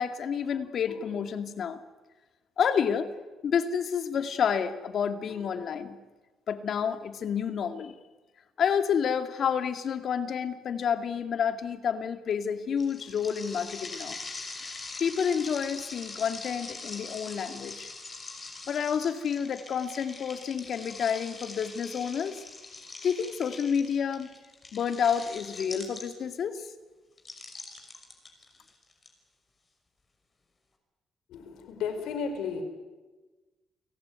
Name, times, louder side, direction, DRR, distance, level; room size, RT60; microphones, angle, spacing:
voice 1, 0.0-1.8 2.6-3.1 3.4-6.0 6.5-7.9 8.6-14.2 15.0-17.9 18.7-22.4 23.0-24.3 24.7-26.7, left 7 dB, 60° left, 9 dB, 2.2 m, -29 dB
sound 1, 12.8-26.4 27.2-29.1, left 3 dB, 30° left, 5.8 m, -43 dB
voice 2, 31.3-32.6, left 6 dB, 85° left, 8 dB, 4.5 m, -33 dB
30.0 x 17.5 x 9.5 m, 1.2 s
cardioid pair, 90°, 0 cm